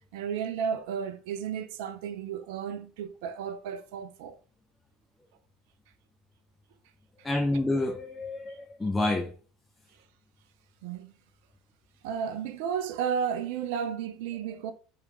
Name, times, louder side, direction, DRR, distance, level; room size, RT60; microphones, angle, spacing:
voice 1, 0.1-4.4 10.8-11.1 12.0-14.7, right 7 dB, 65° right, 0.5 m, -33 dB
voice 2, 7.2-9.3, left 2 dB, 15° left, 0.7 m, -28 dB
4.8 x 3.3 x 3.1 m
hypercardioid pair, 70°, 0 cm